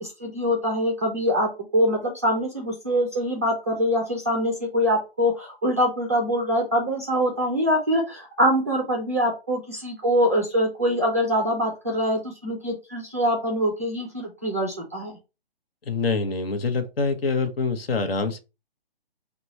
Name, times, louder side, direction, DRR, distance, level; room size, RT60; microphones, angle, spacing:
voice 1, 0.0-15.2, equal, 15° right, 0.3 m, -24 dB
voice 2, 15.9-18.4, left 4 dB, 65° left, 0.8 m, -25 dB
2.9 x 2.2 x 4.1 m
figure-of-eight pair, 145°, 31 cm